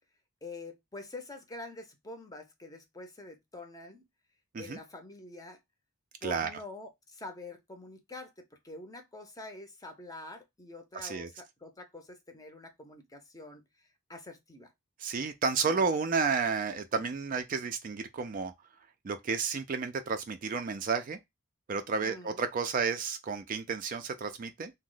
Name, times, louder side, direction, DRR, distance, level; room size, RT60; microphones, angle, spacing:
voice 1, 0.4-4.1 4.6-5.6 6.2-14.7 15.6-15.9 22.0-22.4, left 2 dB, 15° left, 0.6 m, -46 dB
voice 2, 15.0-18.5 19.0-21.2 21.7-24.7, right 5 dB, 40° right, 0.3 m, -31 dB
2.8 x 2.1 x 3.7 m
head